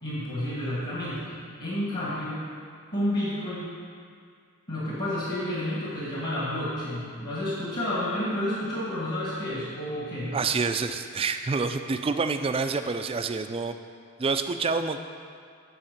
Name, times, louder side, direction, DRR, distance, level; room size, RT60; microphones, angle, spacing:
voice 1, 0.0-1.3 1.6-2.4 2.9-3.7 4.7-10.4, left 1 dB, 45° left, -8 dB, 1.8 m, -30 dB
voice 2, 10.3-13.8 14.2-15.0, right 4 dB, 25° right, 8 dB, 0.3 m, -27 dB
10.0 x 4.2 x 6.6 m, 2.2 s
head